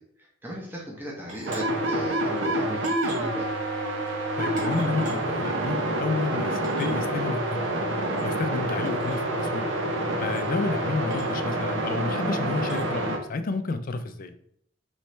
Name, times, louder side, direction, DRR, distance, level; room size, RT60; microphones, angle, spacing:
voice 1, 0.4-3.5, right 1 dB, 10° right, -3 dB, 0.8 m, -36 dB
sound 1, 1.3-1.6 2.3-2.4 2.8-3.3 4.0-4.1 4.6-5.1 6.0-6.1 6.2-6.3 6.6-7.0 8.1-8.2 8.8-9.2 10.2-10.4 11.1-11.4 12.6-12.8, right 1 dB, 45° right, 1.5 m, -43 dB
sound 2, 1.5-13.2, right 1 dB, 75° right, 0.7 m, -28 dB
voice 2, 4.4-7.7 8.2-9.7 10.2-14.3, left 3 dB, 50° left, 9 dB, 0.4 m, -30 dB
sound 3, 5.8-10.8, left 3 dB, 80° left, 0.8 m, -38 dB
4.3 x 3.2 x 3.2 m, 0.69 s
head